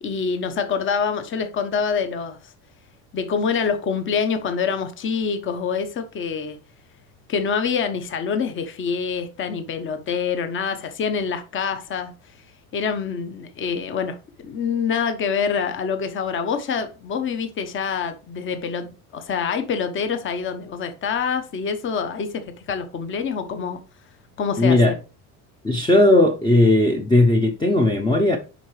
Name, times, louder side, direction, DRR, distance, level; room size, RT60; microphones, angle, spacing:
voice 1, 0.0-2.5 3.1-6.6 7.3-12.1 12.7-14.2 14.4-22.4 22.7-23.8 24.4-25.0, left 6 dB, 30° left, 1.1 m, -26 dB
voice 2, 24.6-24.9 25.6-28.4, left 2 dB, 10° left, 0.7 m, -17 dB
10.5 x 4.0 x 3.3 m
cardioid pair, 135°, 38 cm